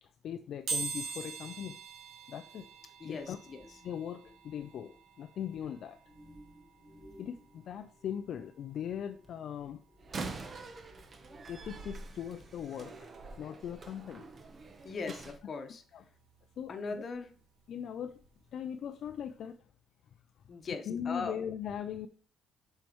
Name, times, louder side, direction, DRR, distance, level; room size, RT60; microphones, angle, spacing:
voice 1, 0.0-1.8 2.3-2.7 3.0-3.4 3.8-6.0 7.2-9.8 11.5-13.1 13.4-14.3 15.9-16.0 16.6-17.0 17.7-18.2 18.5-19.6 20.8-22.1, left 9 dB, 70° left, 8 dB, 0.4 m, -40 dB
sound 1, 0.7-11.3 11.8-11.9 13.0-13.2 13.4-15.5 15.9-18.5 18.9-19.0 19.4-19.5, right 4 dB, 85° right, 1.5 m, -45 dB
sound 2, 2.4-13.7 14.1-14.4, equal, 25° left, 1.5 m, -60 dB
voice 2, 3.0-3.6 14.8-15.8 16.7-17.3 20.5-21.4, left 4 dB, 50° left, 7 dB, 1.0 m, -39 dB
Slam, 10.0-15.4, right 3 dB, 40° right, 0.9 m, -45 dB
7.1 x 4.4 x 3.1 m, 0.42 s
cardioid pair, 90°, 0 cm